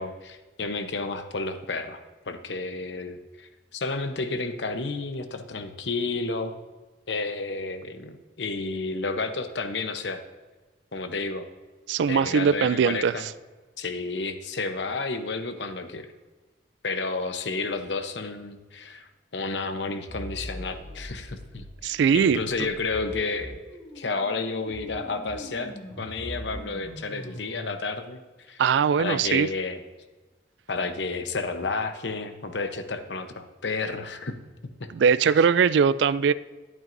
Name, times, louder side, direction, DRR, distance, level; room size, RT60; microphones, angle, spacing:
voice 1, 0.0-2.0 2.3-6.5 7.1-10.2 10.9-11.5 12.1-13.3 13.8-16.1 16.8-23.6 23.9-28.2 28.5-28.6 29.0-29.8 30.7-34.4 34.6-34.9, left 3 dB, 80° left, 8 dB, 0.9 m, -31 dB
voice 2, 11.9-13.1 21.8-22.7 28.6-29.5 34.9-36.3, right 6 dB, 80° right, 17 dB, 0.3 m, -21 dB
sound 1, 20.1-27.7, equal, 15° left, 2.0 m, -41 dB
12.0 x 11.0 x 2.6 m, 1.3 s
head